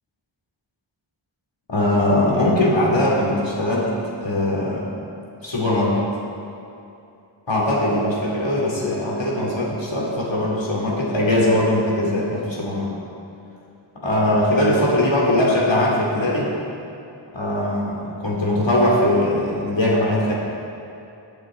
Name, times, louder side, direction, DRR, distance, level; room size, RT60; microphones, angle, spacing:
voice 1, 1.7-3.9 4.2-4.8 5.4-6.0 7.5-12.9 14.0-16.5 17.3-20.3, left 1 dB, 70° left, -4 dB, 2.8 m, -20 dB
17.5 x 8.7 x 3.9 m, 2.7 s
wide cardioid pair, 50°, 46 cm